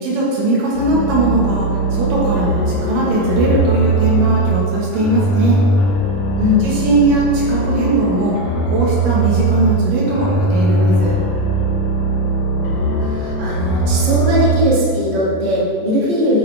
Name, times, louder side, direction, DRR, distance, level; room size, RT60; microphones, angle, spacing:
voice 1, 0.0-5.6 6.6-8.4 8.7-11.1, right 2 dB, 75° right, -5 dB, 3.1 m, -19 dB
sound 1, 0.7-4.6 4.9-9.8 10.1-14.6, right 2 dB, 50° left, 2.3 m, -19 dB
voice 2, 12.4-16.4, left 1 dB, 45° right, -7 dB, 3.1 m, -19 dB
11.0 x 9.7 x 3.4 m, 2.5 s
omnidirectional pair, 3.9 m